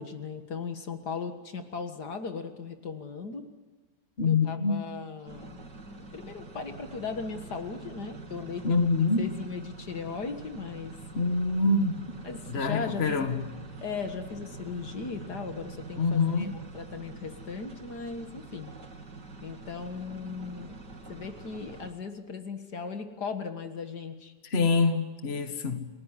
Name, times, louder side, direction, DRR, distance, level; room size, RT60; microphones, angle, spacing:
voice 1, 0.0-3.5 4.3-5.6 6.1-10.9 12.2-13.3 13.8-18.7 19.4-20.7 21.1-24.3, left 5 dB, 65° left, 2.3 m, -37 dB
voice 2, 4.2-4.9 8.6-9.3 11.2-12.0 12.5-13.4 16.0-16.6 24.5-25.9, left 4 dB, 35° left, 2.0 m, -25 dB
sound 1, 5.3-21.9, right 3 dB, 75° right, 3.6 m, -45 dB
30.0 x 18.5 x 9.9 m
omnidirectional pair, 1.9 m